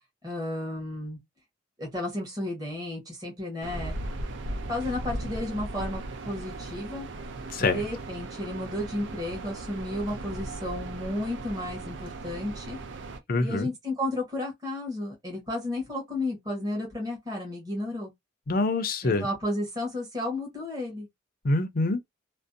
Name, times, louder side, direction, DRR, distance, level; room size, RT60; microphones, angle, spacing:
voice 1, 0.2-1.2 1.8-3.9 4.7-6.0 6.3-7.1 7.6-12.8 13.4-18.1 19.0-21.1, left 1 dB, 20° right, 1.0 m, -33 dB
sound 1, 3.6-13.2, right 2 dB, 65° right, 0.4 m, -37 dB
voice 2, 13.3-13.7 18.5-19.3 21.4-22.0, left 2 dB, 45° left, 0.5 m, -25 dB
2.5 x 2.0 x 2.5 m
head